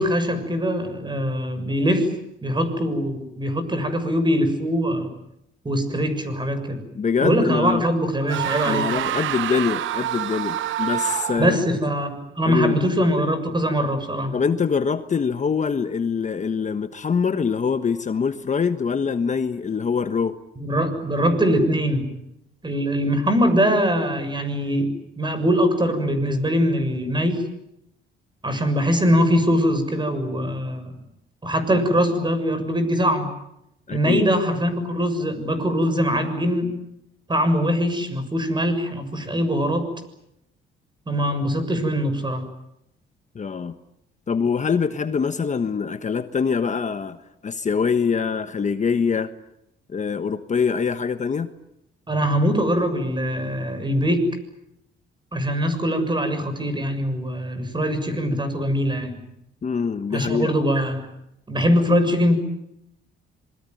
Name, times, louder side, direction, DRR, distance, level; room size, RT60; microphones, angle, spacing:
voice 1, 0.0-2.1 2.4-5.1 5.6-6.8 7.2-8.9 11.4-14.3 20.6-22.1 22.6-24.9 25.2-27.4 28.4-31.0 31.4-33.3 33.9-36.7 37.3-39.8 41.1-42.4 52.1-54.3 55.3-59.2 60.1-61.1 61.5-62.3, equal, 25° right, 6.8 m, -22 dB
voice 2, 6.9-7.8 8.6-11.6 12.4-12.8 14.3-20.4 33.9-34.3 43.3-43.7 44.3-47.2 47.4-49.3 49.9-51.5 59.6-60.5, left 6 dB, 35° left, 1.3 m, -24 dB
sound 1, 8.3-11.6, right 12 dB, 75° right, 1.0 m, -27 dB
27.0 x 22.0 x 9.3 m
cardioid pair, 90°, 20 cm